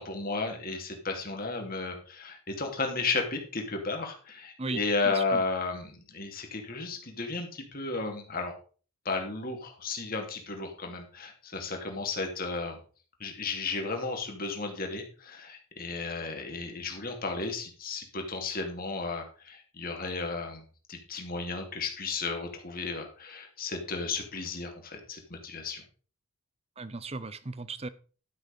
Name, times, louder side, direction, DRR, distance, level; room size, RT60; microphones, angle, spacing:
voice 1, 0.0-8.6 9.0-12.8 13.2-20.6 20.9-25.8, left 3 dB, 40° left, 2.4 m, -34 dB
voice 2, 4.6-5.4 26.8-27.9, right 3 dB, 30° right, 0.7 m, -37 dB
12.0 x 6.2 x 5.2 m
head